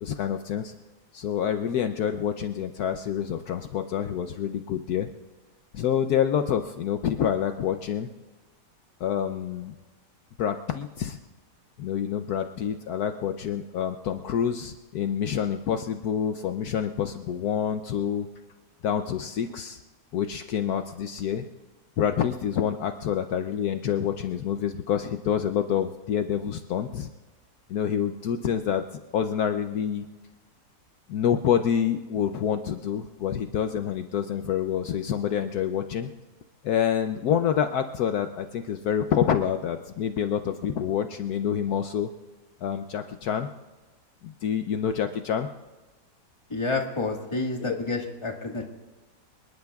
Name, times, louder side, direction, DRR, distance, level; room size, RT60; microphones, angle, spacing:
voice 1, 0.0-0.7 1.1-5.1 5.7-8.1 9.0-9.7 10.4-11.2 11.8-18.3 18.8-19.8 20.1-21.5 22.0-27.1 27.7-30.0 31.1-36.1 36.6-42.1 42.6-43.5 44.2-45.5 47.6-47.8, left 8 dB, 70° left, 7 dB, 1.1 m, -27 dB
voice 2, 46.5-48.6, left 3 dB, 20° left, 1 dB, 1.6 m, -29 dB
27.5 x 20.0 x 2.4 m, 1.2 s
omnidirectional pair, 1.8 m